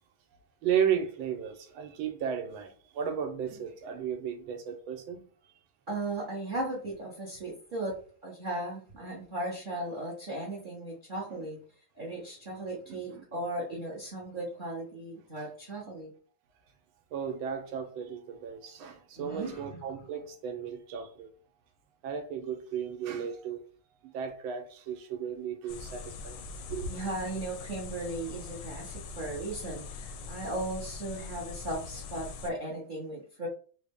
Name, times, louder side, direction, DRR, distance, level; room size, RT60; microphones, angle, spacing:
voice 1, 0.6-5.5 11.3-11.4 12.9-13.2 17.1-21.3 22.0-23.6 24.0-26.4 26.7-27.0, right 8 dB, 85° right, 1.5 m, -34 dB
voice 2, 5.9-7.9 8.2-11.6 11.9-16.1 19.2-19.8 26.9-33.5, right 1 dB, 45° right, 0.6 m, -37 dB
sound 1, 25.7-32.5, left 4 dB, 75° left, 1.1 m, -42 dB
4.0 x 2.1 x 3.5 m
omnidirectional pair, 2.2 m